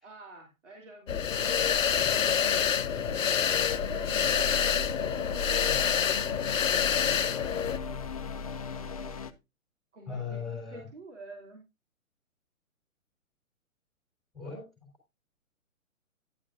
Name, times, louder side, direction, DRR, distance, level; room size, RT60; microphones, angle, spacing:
voice 1, 0.0-1.2 2.8-8.0 9.9-11.6, right 2 dB, 55° right, 3.0 m, -48 dB
sound 1, 1.1-7.8, left 8 dB, 65° left, 0.6 m, -27 dB
sound 2, 1.3-9.3, left 4 dB, 25° left, 0.5 m, -37 dB
voice 2, 10.1-10.9 14.3-14.7, left 5 dB, ahead, 3.7 m, -39 dB
11.0 x 9.9 x 2.6 m
figure-of-eight pair, 130°, 42 cm